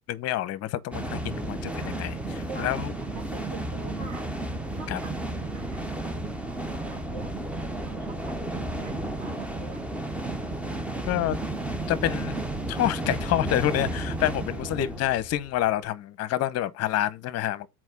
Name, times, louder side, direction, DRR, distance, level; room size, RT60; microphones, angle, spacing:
voice 1, 0.1-2.9 4.9-5.0 11.0-11.4 11.9-12.4 12.7-17.7, left 13 dB, 35° left, 0.9 m, -28 dB
sound 1, 0.9-15.7, right 2 dB, 5° right, 0.4 m, -32 dB
voice 2, 2.5-2.8 3.1-4.3 4.7-9.9, right 5 dB, 35° right, 2.3 m, -46 dB
6.3 x 4.5 x 6.0 m
hypercardioid pair, 110°, 46 cm